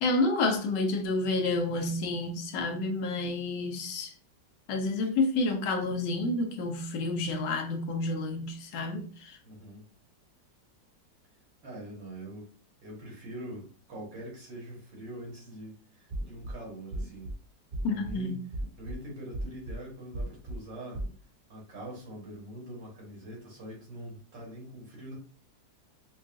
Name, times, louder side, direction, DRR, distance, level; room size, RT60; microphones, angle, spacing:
voice 1, 0.0-4.1 4.7-9.4 17.8-18.4, left 2 dB, 80° left, 1.4 m, -29 dB
voice 2, 9.4-9.9 11.6-12.5 12.8-17.3 17.9-18.4 18.8-21.0 21.5-25.2, right 1 dB, 85° right, 2.2 m, -43 dB
sound 1, 16.1-16.5 16.9-17.3 17.7-18.1 18.5-18.9 19.3-19.7 20.1-20.5 20.9-21.1, right 1 dB, 35° right, 1.3 m, -35 dB
5.4 x 2.3 x 2.5 m
omnidirectional pair, 1.9 m